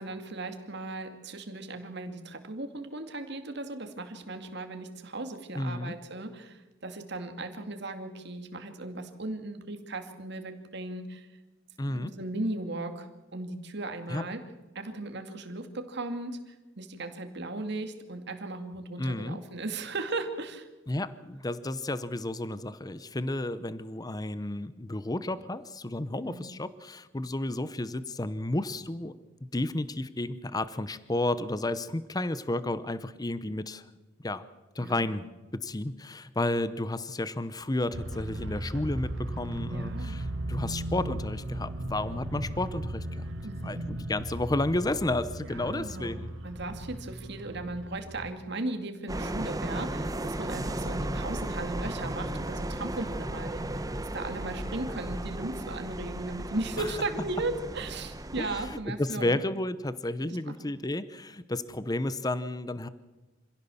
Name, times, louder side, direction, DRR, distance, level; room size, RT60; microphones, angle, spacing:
voice 1, 0.0-11.3 11.9-14.4 14.7-20.7 26.2-26.5 34.8-35.2 39.7-40.2 43.4-43.8 45.4-59.4 60.2-60.7, right 2 dB, 60° right, 6 dB, 2.3 m, -37 dB
voice 2, 5.6-5.9 11.8-12.1 14.1-14.2 19.0-19.4 20.9-29.1 29.5-33.8 34.2-34.4 34.7-35.2 35.5-43.2 43.6-46.3 58.4-62.9, left 2 dB, 20° left, 14 dB, 0.7 m, -32 dB
sound 1, 37.9-48.3, right 1 dB, 80° right, 2.2 m, -36 dB
sound 2, 49.1-58.8, right 1 dB, 20° right, 1.0 m, -35 dB
26.0 x 16.5 x 7.1 m, 1.2 s
head